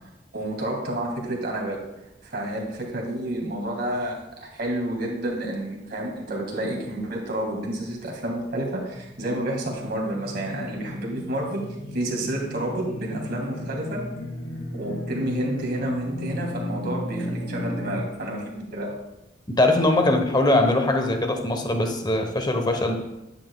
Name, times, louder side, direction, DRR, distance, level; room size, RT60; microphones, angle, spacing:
voice 1, 0.3-1.8 2.2-14.1 14.7-19.0, right 1 dB, 60° right, 0 dB, 1.9 m, -30 dB
sound 1, 8.5-18.0, left 1 dB, 55° left, 1.7 m, -35 dB
voice 2, 19.5-23.0, left 2 dB, 25° left, 5 dB, 0.9 m, -21 dB
9.8 x 9.1 x 2.3 m, 0.93 s
head